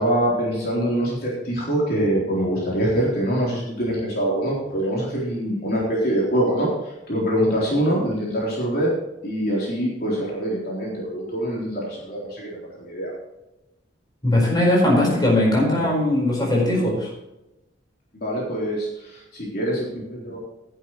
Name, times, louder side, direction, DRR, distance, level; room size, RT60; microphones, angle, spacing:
voice 1, 0.0-8.9 9.2-12.5 12.8-13.1 15.7-15.9 18.1-20.4, right 1 dB, 50° left, -5 dB, 3.8 m, -24 dB
voice 2, 14.2-17.1, left 1 dB, 20° left, -3 dB, 4.8 m, -19 dB
14.5 x 10.0 x 3.2 m, 0.94 s
head